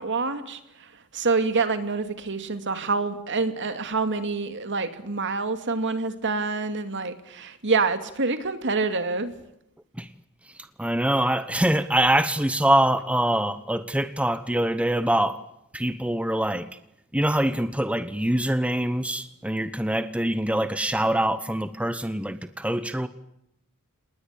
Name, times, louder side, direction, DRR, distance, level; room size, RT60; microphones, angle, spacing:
voice 1, 0.0-9.3, right 4 dB, 55° right, 2.6 m, -27 dB
voice 2, 10.8-15.4 15.7-16.7 17.1-23.1, right 1 dB, 5° right, 1.0 m, -24 dB
28.0 x 20.5 x 8.5 m
head